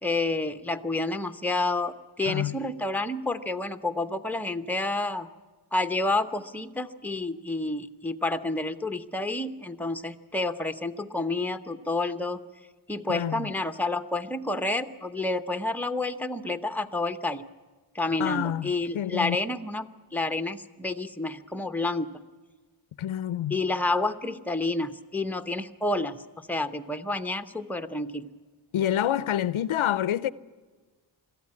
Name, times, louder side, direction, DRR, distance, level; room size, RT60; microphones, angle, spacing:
voice 1, 0.0-5.3 5.7-12.4 12.9-17.5 17.9-22.2 23.5-26.2 26.5-28.3, left 2 dB, 5° left, 0.8 m, -29 dB
voice 2, 2.3-2.6 13.1-13.5 18.2-19.4 23.0-23.6 28.7-30.3, left 11 dB, 85° left, 0.6 m, -27 dB
22.5 x 14.5 x 9.7 m
wide cardioid pair, 95°, 47 cm